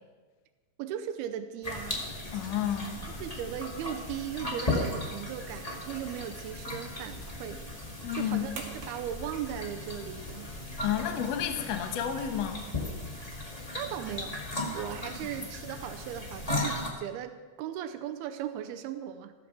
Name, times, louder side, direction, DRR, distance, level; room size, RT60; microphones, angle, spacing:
voice 1, 0.8-2.1 3.2-10.5 13.8-14.4 14.7-19.3, right 10 dB, 90° right, 8 dB, 2.7 m, -38 dB
sound 1, 1.6-16.9, left 2 dB, 30° left, 0.6 m, -37 dB
voice 2, 2.3-3.0 8.0-8.5 10.8-12.6, left 9 dB, 65° left, 6 dB, 1.6 m, -31 dB
sound 2, 5.7-13.4, right 4 dB, 70° right, 3.9 m, -52 dB
14.0 x 14.0 x 4.6 m, 1.4 s
omnidirectional pair, 4.5 m